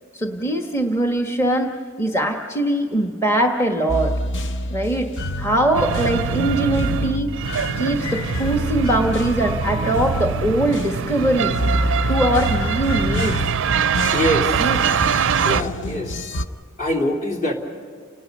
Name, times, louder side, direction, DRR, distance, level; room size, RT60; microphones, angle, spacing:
voice 1, 0.1-4.1 4.7-5.1 5.4-7.3 7.8-11.6 12.1-13.4 14.6-14.8, right 1 dB, 15° left, 3 dB, 1.3 m, -21 dB
sound 1, 3.9-16.5, left 1 dB, 60° left, 0.8 m, -27 dB
sound 2, 5.7-15.6, right 7 dB, 60° right, 0.4 m, -24 dB
voice 2, 14.1-14.7 15.4-16.4 16.8-17.5, left 1 dB, 40° left, 1 dB, 3.0 m, -24 dB
30.0 x 19.5 x 5.4 m, 2.1 s
head